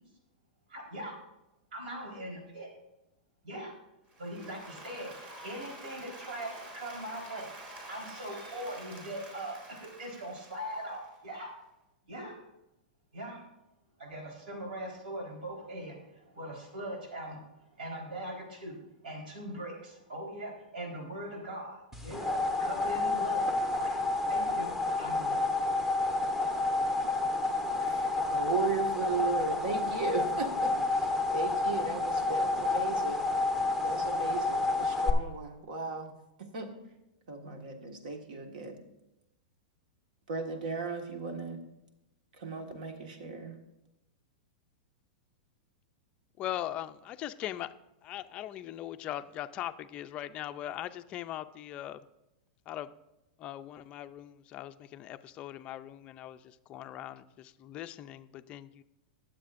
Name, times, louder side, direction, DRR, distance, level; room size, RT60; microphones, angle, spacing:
voice 1, 0.7-1.1 1.7-2.7 3.4-3.7 4.2-11.5 12.1-12.4 13.1-13.4 14.0-17.4 17.7-23.4 23.7-24.7 24.9-25.6, right 1 dB, 85° right, -2 dB, 4.0 m, -41 dB
Applause, 4.1-11.3, right 1 dB, 25° right, 2.4 m, -48 dB
sound 1, 21.9-35.1, left 3 dB, 5° right, 0.7 m, -30 dB
voice 2, 27.8-33.3 33.8-36.1 36.4-36.7 37.3-38.8 40.3-41.6 42.4-43.5, right 4 dB, 70° right, 5 dB, 1.6 m, -36 dB
voice 3, 46.4-47.7 48.0-52.0 52.7-52.9 53.4-58.8, left 12 dB, 25° left, 11 dB, 0.4 m, -40 dB
19.5 x 7.5 x 2.5 m, 0.92 s
supercardioid pair, 160°, 5 cm